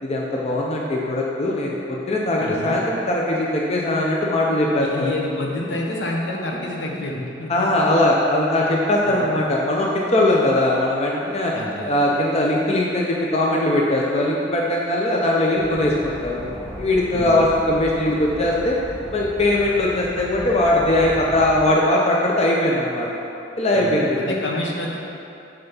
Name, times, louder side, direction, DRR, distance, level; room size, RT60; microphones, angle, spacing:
voice 1, 0.0-5.1 7.5-11.5 11.9-18.8 19.1-23.1 23.6-24.3, left 1 dB, 35° left, -3 dB, 0.6 m, -20 dB
voice 2, 2.4-2.8 4.8-7.5 9.0-9.3 11.5-12.1 17.1-17.5 23.7-25.0, left 1 dB, 70° left, -1 dB, 0.9 m, -28 dB
sound 1, 15.6-21.7, right 1 dB, 5° left, 1.2 m, -37 dB
7.1 x 3.4 x 5.6 m, 2.8 s
head